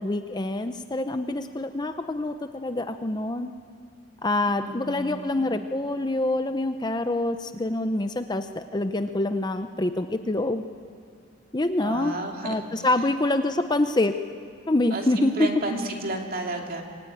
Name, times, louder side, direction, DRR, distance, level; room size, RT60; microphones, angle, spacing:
voice 1, 0.0-3.5 4.2-10.6 11.5-12.2 12.4-14.1 14.7-15.5, left 2 dB, 20° left, 8 dB, 0.6 m, -26 dB
voice 2, 4.5-5.4 11.8-12.6 14.9-16.8, right 2 dB, 45° right, 2 dB, 2.5 m, -32 dB
25.0 x 17.5 x 9.2 m, 2.4 s
head